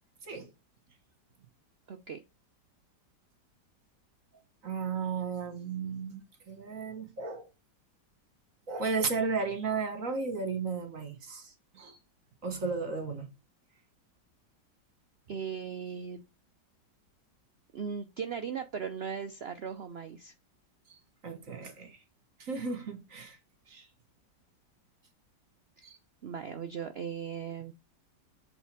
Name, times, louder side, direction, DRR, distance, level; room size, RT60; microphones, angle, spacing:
voice 1, 1.9-2.2 15.3-16.2 17.7-20.3 25.8-25.9 26.2-27.7, right 7 dB, 75° right, 0.5 m, -38 dB
voice 2, 4.6-7.5 8.7-12.0 12.4-13.3 21.2-22.0 22.4-23.4 23.7-23.9 25.8-26.0, right 4 dB, 50° right, 1.8 m, -34 dB
8.1 x 4.3 x 4.6 m
omnidirectional pair, 1.9 m